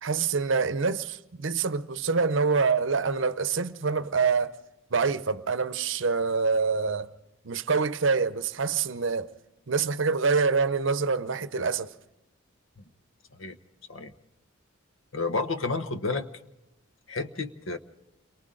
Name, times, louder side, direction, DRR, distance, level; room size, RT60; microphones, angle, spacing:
voice 1, 0.0-4.5 4.9-7.1 7.4-9.3 9.7-11.9, right 5 dB, 65° right, 0.7 m, -26 dB
voice 2, 15.1-16.3 17.1-17.8, left 3 dB, 70° left, 1.1 m, -30 dB
29.5 x 23.0 x 3.8 m
head